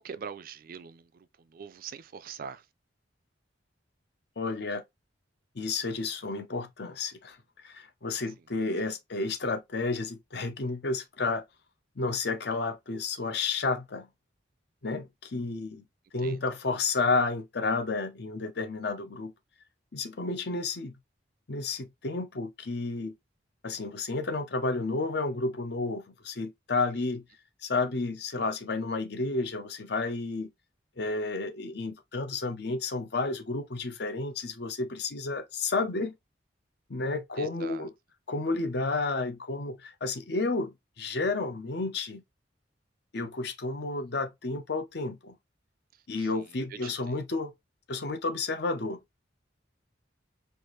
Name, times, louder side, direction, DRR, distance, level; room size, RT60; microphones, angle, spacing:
voice 1, 0.0-2.6 16.2-16.4 37.4-37.9 46.2-46.4 46.7-47.0, right 6 dB, 50° right, 0.4 m, -43 dB
voice 2, 4.4-4.8 5.6-7.4 7.6-11.4 12.0-14.1 14.8-15.8 16.1-19.3 19.9-20.9 21.5-23.1 23.6-27.2 27.6-30.5 31.0-36.1 36.9-37.9 38.3-42.2 43.1-45.4 46.1-47.5 47.9-49.0, left 3 dB, 60° left, 0.7 m, -31 dB
4.5 x 2.5 x 3.1 m
head